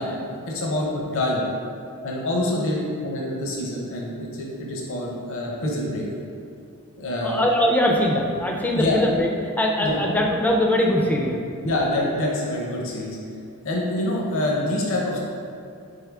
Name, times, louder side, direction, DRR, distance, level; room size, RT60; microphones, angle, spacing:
voice 1, 0.0-1.5 2.0-2.8 3.0-6.1 7.0-7.4 8.7-9.0 9.8-10.0 11.6-13.2 13.6-15.2, left 1 dB, 60° left, -2 dB, 0.6 m, -26 dB
voice 2, 7.2-9.3 9.6-11.4, left 1 dB, 5° left, 0 dB, 0.3 m, -22 dB
3.9 x 3.5 x 3.4 m, 2.5 s
head